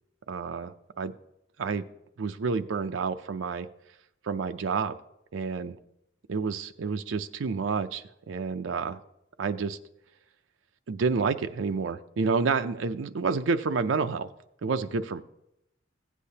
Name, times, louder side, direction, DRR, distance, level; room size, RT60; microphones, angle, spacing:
voice 1, 0.3-1.1 1.6-1.9 2.2-3.7 4.2-5.0 5.3-5.8 6.3-9.0 9.4-9.8 10.9-14.3 14.6-15.2, right 4 dB, 80° right, 9 dB, 0.5 m, -29 dB
15.5 x 8.3 x 2.8 m, 0.82 s
head